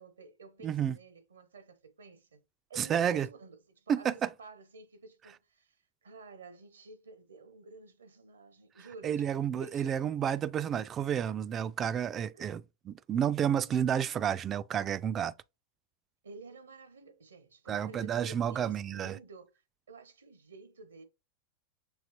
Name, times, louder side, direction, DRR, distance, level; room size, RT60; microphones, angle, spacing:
voice 1, 0.0-2.4 2.7-10.3 12.3-12.4 16.2-19.5 19.9-21.0, right 3 dB, 70° right, 0.8 m, -52 dB
voice 2, 0.6-1.0 2.8-3.3 3.9-4.3 9.0-15.3 17.7-19.2, right 9 dB, 25° right, 0.3 m, -30 dB
6.3 x 2.9 x 2.8 m
figure-of-eight pair, 90°, 0 cm